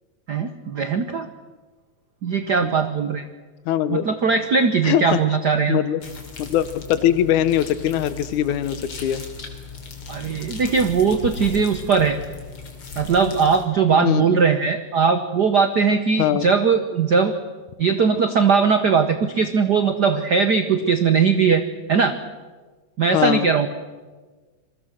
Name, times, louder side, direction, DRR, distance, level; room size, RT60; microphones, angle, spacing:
voice 1, 0.3-1.3 2.2-3.3 3.9-5.8 10.1-12.2 13.0-17.3 17.8-21.6 21.9-22.1 23.0-23.7, right 5 dB, 75° right, 9 dB, 0.9 m, -19 dB
voice 2, 3.7-4.1 4.8-5.2 5.7-6.0 6.4-9.2 13.9-14.4 16.2-16.5 23.1-23.5, left 11 dB, 85° left, 14 dB, 2.4 m, -21 dB
sound 1, 6.0-13.7, left 4 dB, 45° left, 3.7 m, -36 dB
27.0 x 22.0 x 6.5 m, 1.3 s
omnidirectional pair, 3.4 m